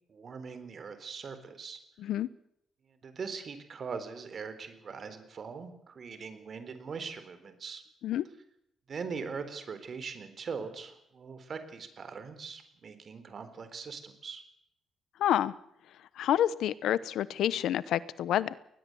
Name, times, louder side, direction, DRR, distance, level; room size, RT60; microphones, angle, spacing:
voice 1, 0.1-1.8 2.9-7.8 8.9-14.4, right 5 dB, 40° right, 10 dB, 4.0 m, -41 dB
voice 2, 2.0-2.3 8.0-8.2 15.2-15.5 16.2-18.5, left 11 dB, 75° left, 18 dB, 1.0 m, -28 dB
21.0 x 20.0 x 8.0 m, 0.78 s
cardioid pair, 125°, 0 cm